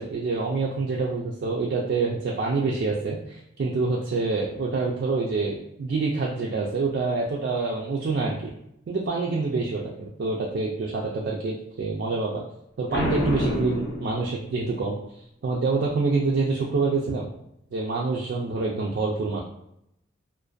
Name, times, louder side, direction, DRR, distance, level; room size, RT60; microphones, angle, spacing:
voice 1, 0.0-8.5 8.9-12.4 12.8-15.0 15.4-17.3 17.7-19.4, right 3 dB, 55° right, -3 dB, 0.3 m, -26 dB
Boom, 12.9-14.8, left 1 dB, 55° left, 0.6 m, -28 dB
2.5 x 2.2 x 2.3 m, 0.78 s
head